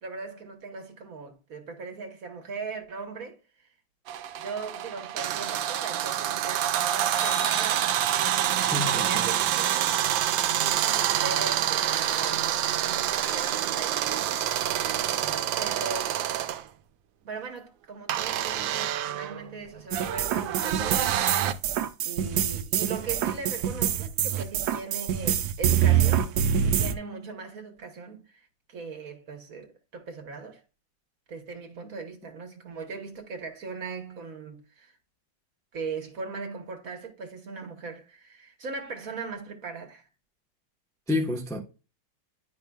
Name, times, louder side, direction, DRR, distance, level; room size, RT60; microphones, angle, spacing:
voice 1, 0.0-3.7 4.4-8.1 8.9-10.0 10.5-14.1 15.0-16.2 17.2-21.2 22.0-30.6 31.3-35.0 35.7-40.0, right 4 dB, 50° right, 1.4 m, -39 dB
sound 1, 4.1-16.6 18.1-21.5, right 11 dB, 85° right, 1.4 m, -27 dB
sound 2, 5.4-5.5 7.1-8.5, left 4 dB, 85° left, 1.5 m, -41 dB
voice 2, 8.7-9.3 15.2-15.3 41.1-41.6, left 2 dB, 5° left, 0.4 m, -29 dB
sound 3, 19.9-26.9, right 9 dB, 65° right, 1.1 m, -25 dB
10.5 x 5.2 x 2.3 m
omnidirectional pair, 2.0 m